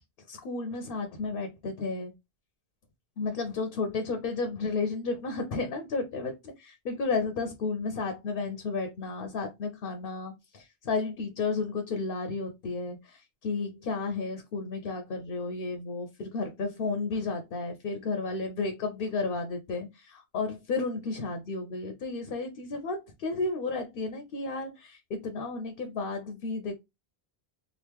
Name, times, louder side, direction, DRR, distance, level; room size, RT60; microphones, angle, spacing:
voice 1, 0.3-2.1 3.2-26.7, left 3 dB, 65° left, 0.8 m, -32 dB
3.0 x 2.5 x 3.4 m
omnidirectional pair, 1.0 m